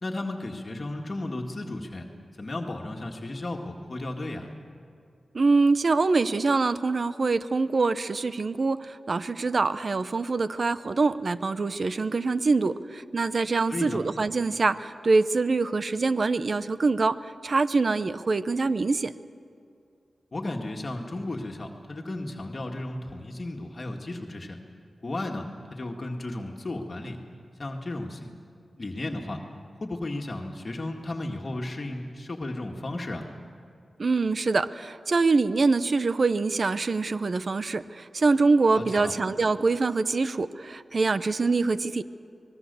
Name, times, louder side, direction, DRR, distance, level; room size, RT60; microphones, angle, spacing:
voice 1, 0.0-2.1 2.4-4.5 13.7-14.0 20.3-24.6 25.0-25.4 25.7-27.2 27.6-28.3 28.8-29.4 29.8-33.3 38.7-39.1, left 2 dB, 40° left, 1 dB, 2.0 m, -34 dB
voice 2, 5.3-19.1 34.0-42.0, right 3 dB, 55° right, 13 dB, 0.7 m, -24 dB
25.5 x 20.5 x 7.0 m, 2.4 s
wide cardioid pair, 80°, 0 cm